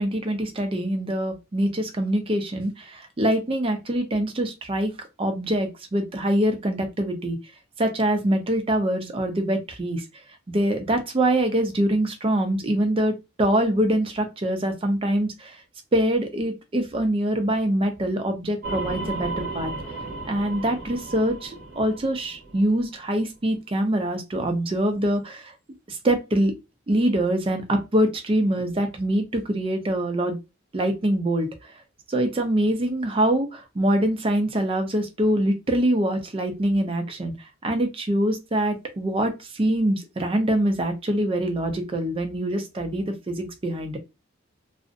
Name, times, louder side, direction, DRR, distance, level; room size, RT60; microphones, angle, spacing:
voice 1, 0.0-7.4 7.8-10.0 10.5-15.6 15.9-19.7 20.3-25.5 25.9-26.5 26.9-30.4 30.7-31.7 32.1-37.3 37.6-44.0, right 1 dB, 25° right, 5 dB, 0.4 m, -24 dB
sound 1, 18.6-23.0, right 3 dB, 50° right, 0.8 m, -34 dB
2.5 x 2.0 x 2.4 m, 0.25 s
head